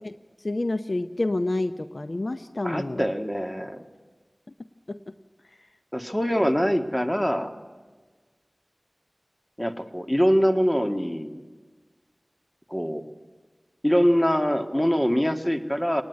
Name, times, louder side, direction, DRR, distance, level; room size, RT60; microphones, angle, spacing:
voice 1, 0.4-3.1 4.9-5.0, left 2 dB, 55° left, 10 dB, 0.7 m, -28 dB
voice 2, 2.6-3.8 5.9-7.5 9.6-11.4 12.7-13.0 13.8-16.0, equal, 10° left, 6 dB, 1.8 m, -23 dB
24.5 x 19.0 x 9.6 m, 1.4 s
wide cardioid pair, 50°, 0 cm